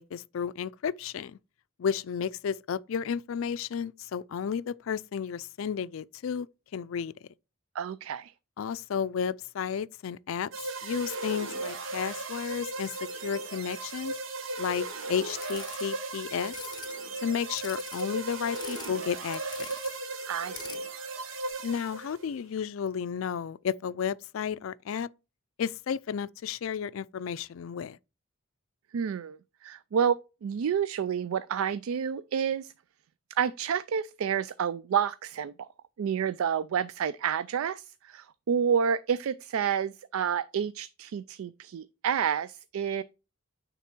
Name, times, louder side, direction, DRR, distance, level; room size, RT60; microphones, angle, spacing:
voice 1, 0.0-1.4 1.8-6.5 6.7-7.1 8.6-10.5 10.8-13.0 13.2-14.1 14.6-16.5 17.2-19.7 21.6-25.1 25.6-28.0, left 7 dB, 80° left, 0.4 m, -32 dB
voice 2, 7.7-8.3 20.3-20.9 28.9-32.7 33.4-35.7 36.0-43.0, right 7 dB, 90° right, 0.4 m, -29 dB
sound 1, 10.5-22.3, right 2 dB, 70° right, 1.0 m, -36 dB
sound 2, 15.4-15.9 16.4-16.9 17.6-18.9 19.2-20.0 20.3-20.8, left 8 dB, 20° left, 0.5 m, -45 dB
9.3 x 3.5 x 4.4 m
head